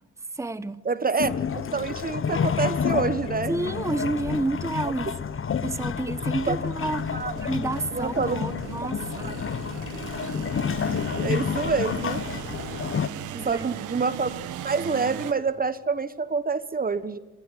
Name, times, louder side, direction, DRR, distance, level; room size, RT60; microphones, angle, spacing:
voice 1, 0.3-0.8 3.5-5.3 5.6-9.4 13.3-13.7, right 2 dB, 10° right, 1.1 m, -30 dB
voice 2, 0.8-3.5 4.8-4.9 6.5-6.6 7.1-7.3 7.9-8.4 9.2-9.6 11.2-12.2 13.4-14.4 14.6-17.2, right 4 dB, 30° right, 1.2 m, -27 dB
sound 1, 1.2-13.1, left 7 dB, 45° left, 1.4 m, -29 dB
sound 2, 5.2-5.3 5.9-15.3, right 11 dB, 90° right, 1.8 m, -38 dB
26.5 x 22.0 x 9.9 m
cardioid pair, 90°, 30 cm